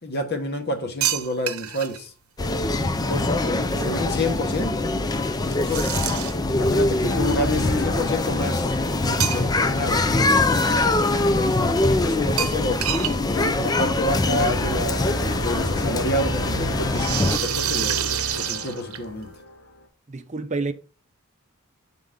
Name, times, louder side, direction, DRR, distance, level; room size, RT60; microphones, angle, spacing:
voice 1, 0.0-2.1 2.9-4.8 5.4-5.9 6.5-11.5 12.0-12.8 13.2-15.0 15.4-18.0 18.4-19.3, left 1 dB, 50° left, 1.3 m, -29 dB
sound 1, 1.0-2.0 5.7-6.5 9.2-9.8 10.2-10.3 12.4-13.2 13.4-13.5 13.8-13.9 15.1-15.2 16.9-19.2, right 10 dB, 80° right, 0.8 m, -27 dB
sound 2, 2.4-17.4, left 2 dB, 20° left, 0.4 m, -23 dB
voice 2, 3.3-4.0 20.1-20.7, right 3 dB, 35° right, 0.6 m, -31 dB
sound 3, 7.1-9.1 14.2-19.8, right 1 dB, 75° left, 2.1 m, -32 dB
8.9 x 4.1 x 3.7 m
head